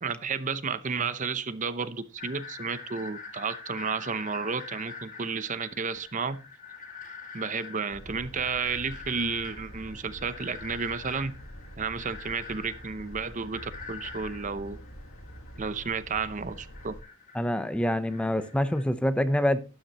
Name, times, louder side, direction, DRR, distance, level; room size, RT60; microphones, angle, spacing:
voice 1, 0.0-6.4 7.3-11.3 11.8-14.8 15.6-16.9, right 5 dB, 40° right, 0.7 m, -32 dB
sound 1, 2.2-18.8, left 5 dB, 40° left, 3.6 m, -45 dB
sound 2, 7.9-17.0, equal, 80° left, 2.0 m, -46 dB
voice 2, 17.3-19.6, left 1 dB, 5° left, 0.8 m, -26 dB
12.5 x 12.0 x 3.0 m
head